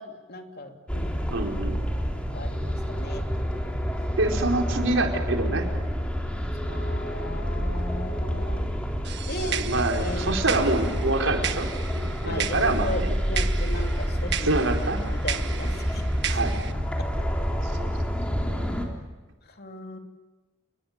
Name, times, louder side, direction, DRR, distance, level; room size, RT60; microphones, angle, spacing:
voice 1, 0.0-1.3 2.1-3.7 6.5-8.7 9.3-9.6 10.0-10.4 12.2-14.6 15.0-16.0 16.3-16.4 19.5-20.0, left 1 dB, 55° left, 4 dB, 2.9 m, -37 dB
sound 1, 0.9-18.8, equal, 5° left, 3.9 m, -28 dB
voice 2, 1.3-1.8 4.2-5.7 9.4-13.1 14.4-15.0 16.3-16.8 17.6-17.9, right 2 dB, 85° right, 2 dB, 4.5 m, -26 dB
sound 2, 9.0-16.7, right 10 dB, 65° right, 1.6 m, -35 dB
29.5 x 21.5 x 8.8 m, 1.2 s
head